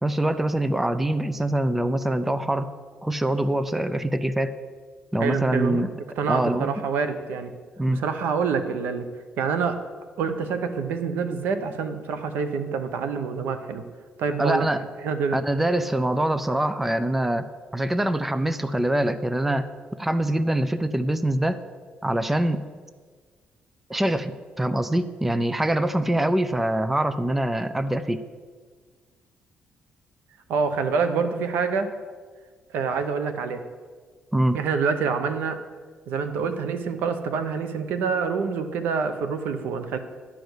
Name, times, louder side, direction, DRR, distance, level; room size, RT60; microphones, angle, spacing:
voice 1, 0.0-2.7 3.0-4.5 5.1-5.9 6.3-6.7 7.8-8.0 14.4-14.8 15.3-17.5 17.7-19.7 20.0-21.6 22.0-22.6 23.9-28.2 34.3-34.6, right 1 dB, 5° right, 12 dB, 0.4 m, -24 dB
voice 2, 5.2-5.8 6.2-7.5 7.9-9.1 9.4-9.8 10.2-13.8 14.2-15.4 30.5-31.9 32.7-33.6 34.5-35.6 36.1-40.0, right 5 dB, 90° right, 9 dB, 0.9 m, -26 dB
11.5 x 5.1 x 7.9 m, 1.5 s
cardioid pair, 145°, 3 cm